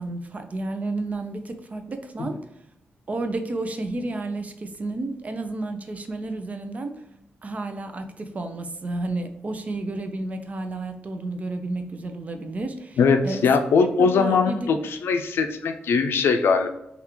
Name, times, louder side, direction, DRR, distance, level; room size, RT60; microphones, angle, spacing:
voice 1, 0.0-2.4 3.1-7.0 7.4-13.0 13.2-13.5 13.8-14.7, right 2 dB, 40° right, 7 dB, 0.5 m, -31 dB
voice 2, 13.0-16.7, left 5 dB, 85° left, 7 dB, 0.4 m, -21 dB
3.5 x 2.4 x 3.0 m, 0.81 s
cardioid pair, 85°, 4 cm